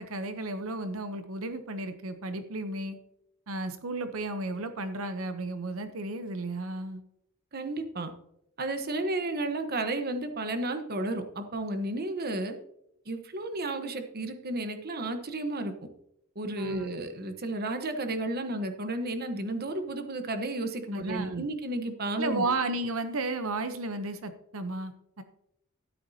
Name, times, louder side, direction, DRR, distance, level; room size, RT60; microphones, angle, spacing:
voice 1, 0.0-3.0 3.5-7.0 16.6-16.9 20.9-21.4 22.2-25.2, right 2 dB, 75° right, 9 dB, 0.8 m, -33 dB
voice 2, 7.5-8.1 8.6-12.5 13.1-15.7 16.3-22.4, right 2 dB, 50° right, 7 dB, 1.1 m, -32 dB
13.0 x 10.0 x 2.8 m, 0.78 s
head